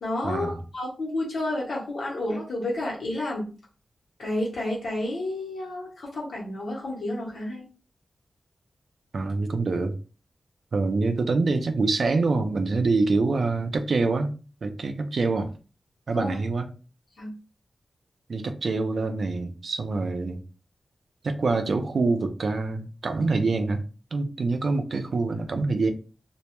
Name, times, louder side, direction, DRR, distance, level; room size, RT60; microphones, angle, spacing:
voice 1, 0.0-3.5 4.2-7.7 16.1-16.4 17.2-17.3, left 1 dB, 80° left, 0.8 m, -30 dB
voice 2, 9.1-9.9 10.7-14.3 14.6-15.5 16.1-16.7 18.3-20.4 21.2-23.8 24.1-25.9, right 3 dB, 70° right, 0.4 m, -25 dB
2.2 x 2.0 x 2.9 m
cardioid pair, 65°, 0 cm